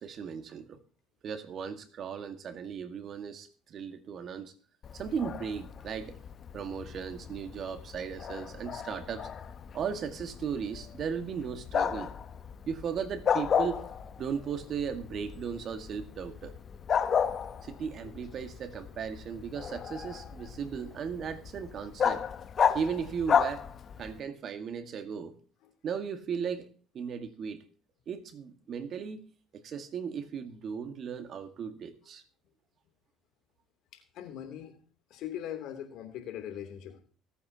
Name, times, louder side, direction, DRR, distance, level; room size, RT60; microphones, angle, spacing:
voice 1, 0.0-0.8 1.2-4.5 4.9-6.2 6.5-9.3 9.7-12.1 12.7-13.9 14.2-16.6 17.6-22.3 22.7-23.6 24.0-25.4 25.8-26.7 26.9-27.6 28.1-29.2 29.5-32.2, right 7 dB, 50° right, 8 dB, 1.7 m, -36 dB
Bark, 4.8-24.2, left 7 dB, 45° left, 0.9 m, -34 dB
voice 2, 33.9-34.8 35.1-37.0, left 10 dB, 65° left, 5 dB, 3.0 m, -40 dB
25.0 x 8.6 x 2.9 m, 0.42 s
hypercardioid pair, 70°, 0 cm